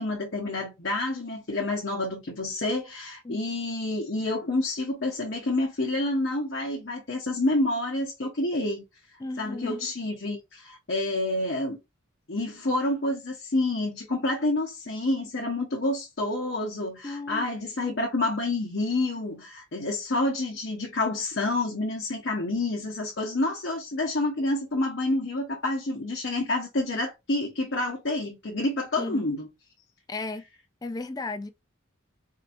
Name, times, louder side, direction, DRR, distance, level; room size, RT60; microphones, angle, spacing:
voice 1, 0.0-8.8 9.4-11.8 12.3-29.5, left 2 dB, 60° left, 0.9 m, -28 dB
voice 2, 9.2-9.8 17.0-17.5 29.0-29.3 30.1-30.4 30.8-31.5, left 2 dB, 20° left, 0.3 m, -34 dB
4.5 x 2.7 x 2.6 m
head